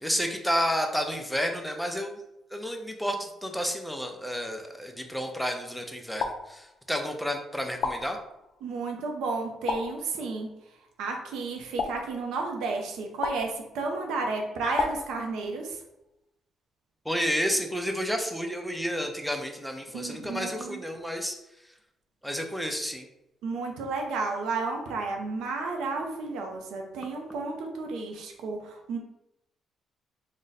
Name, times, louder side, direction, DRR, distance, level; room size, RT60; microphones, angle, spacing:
voice 1, 0.0-2.2 2.5-8.2 17.1-21.4 22.2-23.1, equal, ahead, 3 dB, 0.4 m, -30 dB
sound 1, 6.2-7.1 7.8-8.7 9.7-10.5 11.8-12.7 13.2-14.0 14.8-15.8, left 4 dB, 70° left, 0.3 m, -35 dB
voice 2, 8.6-10.5 11.0-15.8 19.9-20.8 23.4-29.0, right 3 dB, 90° right, 3 dB, 0.5 m, -32 dB
2.5 x 2.1 x 3.9 m, 0.88 s
cardioid pair, 90°, 0 cm